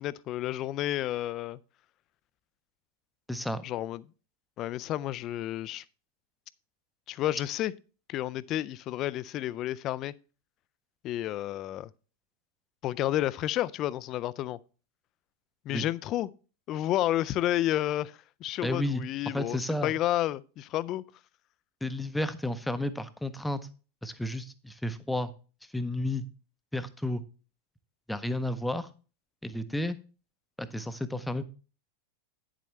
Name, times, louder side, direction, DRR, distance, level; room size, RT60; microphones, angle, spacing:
voice 1, 0.0-1.6 3.6-4.0 4.6-5.8 7.1-7.7 8.1-10.1 11.0-11.9 12.8-14.6 15.7-16.3 16.7-21.0, left 13 dB, 35° left, 0.3 m, -31 dB
voice 2, 3.3-3.6 15.7-15.9 18.6-19.0 19.3-19.9 21.8-23.6 24.0-25.3 25.7-26.2 26.7-27.2 28.1-28.9 29.4-30.0 30.6-31.4, left 1 dB, 5° left, 0.6 m, -32 dB
9.3 x 7.4 x 3.2 m
figure-of-eight pair, 90°, 0 cm